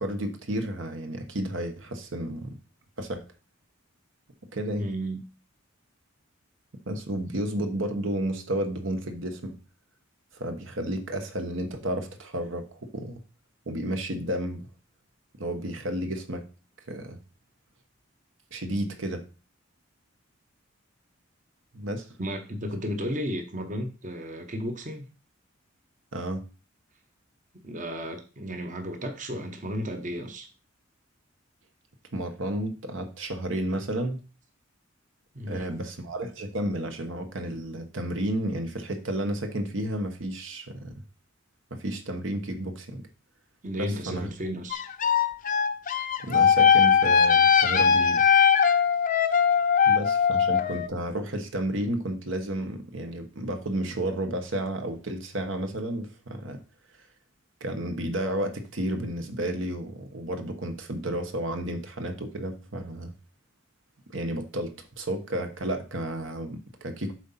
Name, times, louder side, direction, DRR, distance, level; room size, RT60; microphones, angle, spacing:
voice 1, 0.0-2.6 3.0-3.2 4.5-4.9 6.9-9.6 10.3-13.2 13.7-14.6 15.4-16.5 16.9-17.2 18.5-19.2 21.7-22.1 26.1-26.4 32.1-34.2 35.5-40.9 41.7-43.0 43.8-44.3 46.2-48.3 49.8-56.6 57.6-63.1 64.1-67.1, right 1 dB, 70° right, 6 dB, 1.2 m, -32 dB
voice 2, 4.8-5.2 22.2-25.0 27.6-30.5 35.3-35.8 43.6-44.8, equal, 40° right, 5 dB, 1.0 m, -33 dB
sound 1, 44.7-50.9, left 7 dB, 40° left, 0.7 m, -20 dB
7.9 x 3.9 x 5.7 m, 0.33 s
head